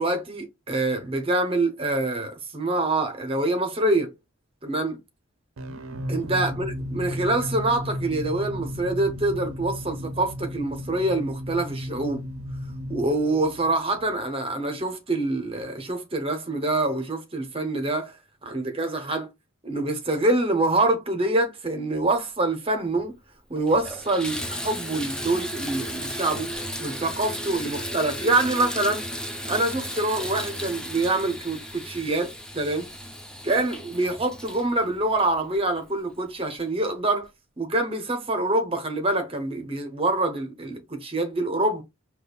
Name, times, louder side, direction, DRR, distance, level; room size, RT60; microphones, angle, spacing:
voice 1, 0.0-4.1 4.6-5.0 6.1-12.2 12.9-18.2 18.4-19.3 19.6-23.1 23.5-29.0 29.4-32.9 33.4-37.3 37.6-41.8, right 2 dB, 30° right, 0.7 m, -25 dB
sound 1, 5.6-14.2, equal, 90° right, 0.5 m, -34 dB
Water tap faucet / Bathtub (filling or washing), 23.0-23.1 23.6-36.0 36.6-36.7 37.2-37.3, equal, 5° left, 0.4 m, -35 dB
5.3 x 2.3 x 2.2 m
head